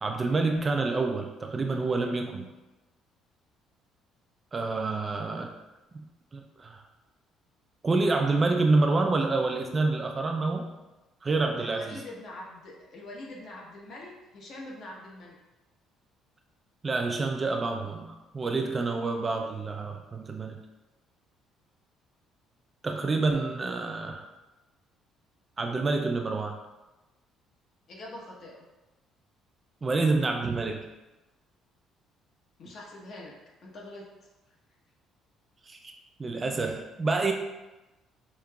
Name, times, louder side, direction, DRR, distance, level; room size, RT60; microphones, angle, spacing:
voice 1, 0.0-2.5 4.5-5.5 5.9-6.0 6.3-6.8 7.8-10.7 11.2-12.0 16.8-20.6 22.8-24.3 25.6-26.6 29.8-30.8 35.7-35.9 36.2-37.3, right 3 dB, 25° right, 3 dB, 0.3 m, -27 dB
voice 2, 11.6-15.4 27.9-28.7 32.6-33.3 33.6-34.0, left 1 dB, 50° left, -2 dB, 0.9 m, -44 dB
5.0 x 2.8 x 2.3 m, 1.1 s
cardioid pair, 130°, 0 cm